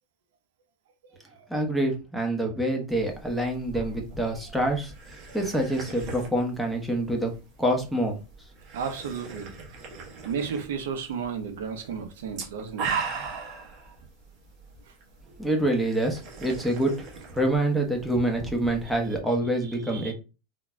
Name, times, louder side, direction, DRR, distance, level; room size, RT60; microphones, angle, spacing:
voice 1, 1.5-7.3 7.6-8.2 15.4-17.1 17.3-20.1, right 1 dB, ahead, 1.0 m, -26 dB
sound 1, 2.9-19.2, right 5 dB, 50° right, 1.2 m, -40 dB
voice 2, 8.7-9.5 10.2-13.1 19.6-20.1, right 6 dB, 80° right, 0.8 m, -33 dB
3.8 x 2.7 x 2.3 m
supercardioid pair, 125°, 0 cm